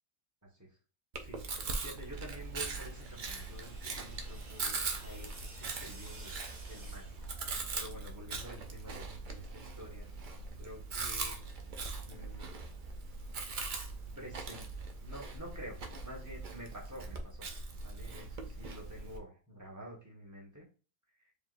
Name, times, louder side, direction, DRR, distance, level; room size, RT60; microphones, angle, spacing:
Chewing mastication, 1.1-19.2, right 3 dB, 55° right, 0.5 m, -41 dB
voice 1, 1.2-7.1 7.7-10.1 10.6-11.4 12.0-12.5 14.2-14.7 15.0-17.5 17.8-20.6, equal, 10° right, -3 dB, 1.4 m, -49 dB
sound 1, 2.1-7.9, right 2 dB, 70° right, 1.6 m, -54 dB
4.6 x 3.5 x 2.6 m, 0.35 s
omnidirectional pair, 1.5 m